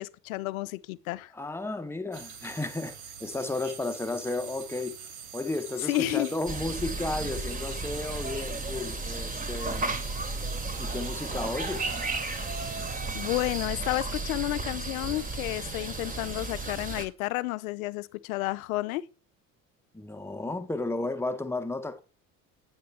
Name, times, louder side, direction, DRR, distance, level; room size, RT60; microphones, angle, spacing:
voice 1, 0.0-1.3 5.9-6.3 13.1-19.0, left 18 dB, 65° left, 0.6 m, -31 dB
voice 2, 1.3-5.0 5.3-10.0 10.8-12.0 19.9-22.0, left 2 dB, 5° left, 0.8 m, -33 dB
sound 1, 2.1-13.7, right 7 dB, 55° right, 1.5 m, -44 dB
sound 2, 6.5-17.1, right 3 dB, 20° right, 1.1 m, -34 dB
8.6 x 5.9 x 3.3 m
figure-of-eight pair, 60°, 46 cm